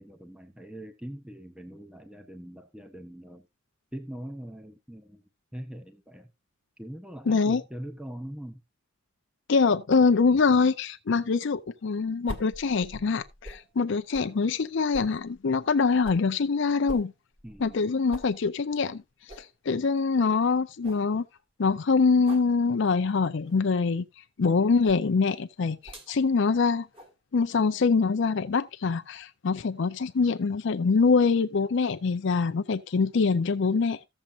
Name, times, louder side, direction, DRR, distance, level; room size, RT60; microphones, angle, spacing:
voice 1, 0.0-3.4 3.9-5.2 5.5-6.3 6.8-8.6 17.4-17.9, equal, 5° right, 0.8 m, -42 dB
voice 2, 7.3-7.6 9.5-17.1 17.6-19.0 19.4-21.3 21.6-24.0 24.4-26.9 27.3-34.0, left 4 dB, 60° left, 0.5 m, -24 dB
sound 1, 12.3-13.7 14.1-14.3 14.9-16.3 16.9-17.8 18.1-18.3 18.7-18.8 19.3-19.5 20.0-20.1 20.4-20.5 20.8-21.1 22.2-22.5 23.4-23.7 24.8-25.1 25.8-26.1 26.9-27.1, equal, 25° right, 1.6 m, -43 dB
14.5 x 7.3 x 2.5 m
head